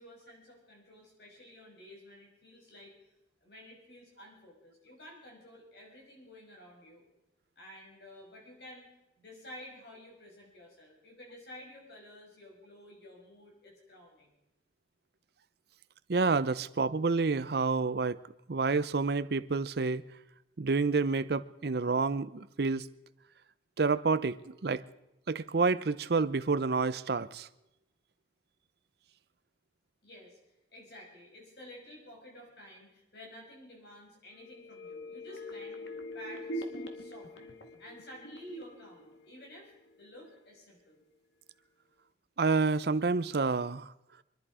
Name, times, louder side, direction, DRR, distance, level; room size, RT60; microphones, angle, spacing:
voice 1, 0.0-2.9 3.4-7.0 7.6-8.9 9.2-14.3 30.0-30.4 30.7-35.8 36.1-41.0, left 1 dB, 65° left, 6.2 m, -52 dB
voice 2, 16.1-18.2 18.5-20.0 20.6-22.9 23.8-24.8 25.3-27.5 42.4-43.9, right 4 dB, 60° right, 0.6 m, -29 dB
sound 1, 34.3-40.0 40.3-40.4, equal, 85° left, 1.8 m, -43 dB
25.5 x 11.0 x 4.9 m
head